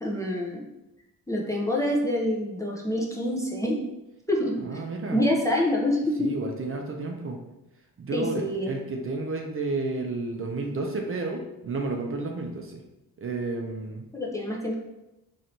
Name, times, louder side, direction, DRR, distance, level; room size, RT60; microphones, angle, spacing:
voice 1, 0.0-0.6 1.3-3.8 4.3-4.8 5.1-6.3 8.1-8.7 14.1-14.7, left 1 dB, 10° left, -2 dB, 0.5 m, -26 dB
voice 2, 4.6-5.2 6.2-7.4 8.0-12.8 13.2-14.0, right 3 dB, 40° right, 2 dB, 0.5 m, -31 dB
4.3 x 3.2 x 2.7 m, 0.95 s
wide cardioid pair, 125°, 34 cm